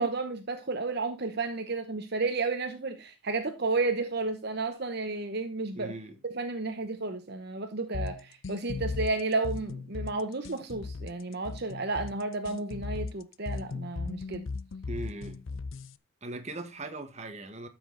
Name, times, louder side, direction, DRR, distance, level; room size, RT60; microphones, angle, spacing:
voice 1, 0.0-5.9 6.2-14.4, right 3 dB, 50° right, 0.9 m, -32 dB
voice 2, 5.7-6.2 14.9-15.4 16.2-17.7, right 2 dB, 30° right, 1.4 m, -39 dB
sound 1, 7.9-16.0, left 4 dB, 70° left, 0.6 m, -37 dB
12.5 x 6.2 x 3.9 m
head